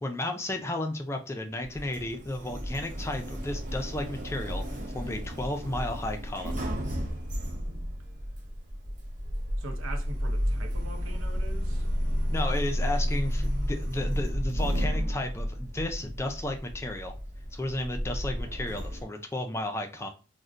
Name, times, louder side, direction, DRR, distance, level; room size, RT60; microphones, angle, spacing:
voice 1, 0.0-6.6 12.3-17.1 17.5-20.1, left 1 dB, 15° left, 0.3 m, -33 dB
Sliding door, 1.6-19.0, equal, 40° right, 0.6 m, -32 dB
voice 2, 9.6-11.9, right 2 dB, 90° right, 0.6 m, -42 dB
3.9 x 2.1 x 2.4 m
head